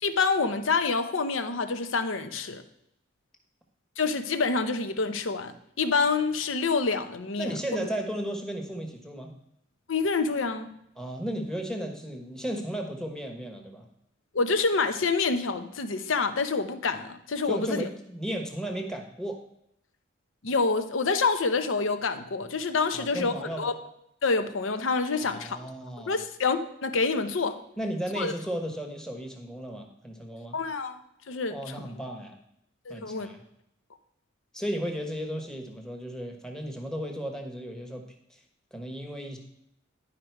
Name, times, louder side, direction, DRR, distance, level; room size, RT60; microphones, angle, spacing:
voice 1, 0.0-2.6 4.0-7.5 9.9-10.7 14.3-17.9 20.4-23.7 24.2-25.6 26.1-27.6 28.2-28.3 30.5-31.0 31.3-31.6 32.9-33.3, left 4 dB, 70° left, 10 dB, 0.7 m, -27 dB
voice 2, 7.4-9.3 11.0-13.9 17.4-19.4 22.9-23.7 25.2-26.2 27.8-30.6 31.5-32.4 32.9-33.4 34.5-38.0 38.3-38.4 38.7-39.4, equal, 5° left, 2 dB, 1.1 m, -34 dB
11.0 x 5.1 x 4.5 m, 0.76 s
head